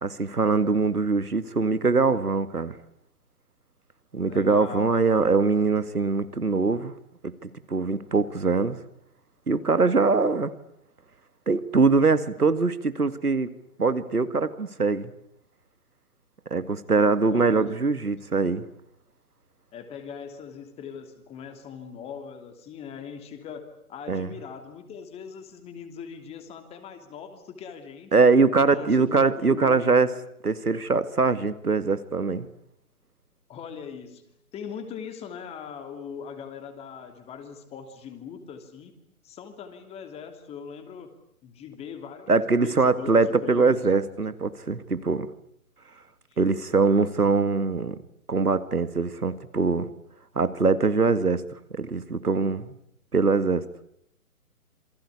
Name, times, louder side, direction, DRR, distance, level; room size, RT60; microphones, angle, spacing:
voice 1, 0.0-2.8 4.1-6.9 7.4-8.8 9.5-10.5 11.5-13.5 13.8-15.1 16.5-18.6 24.1-24.3 28.1-30.1 30.4-32.5 42.3-45.3 46.4-48.0 48.3-49.9 50.4-51.4 51.7-52.7 53.1-53.6, right 4 dB, 85° right, 2.1 m, -22 dB
voice 2, 4.3-5.3 17.3-17.7 19.7-28.1 28.6-30.0 33.5-34.2 34.5-38.9 39.2-41.1 41.4-43.8 46.3-46.4, left 7 dB, 15° left, 2.9 m, -40 dB
27.5 x 23.5 x 8.4 m
figure-of-eight pair, 140°, 44 cm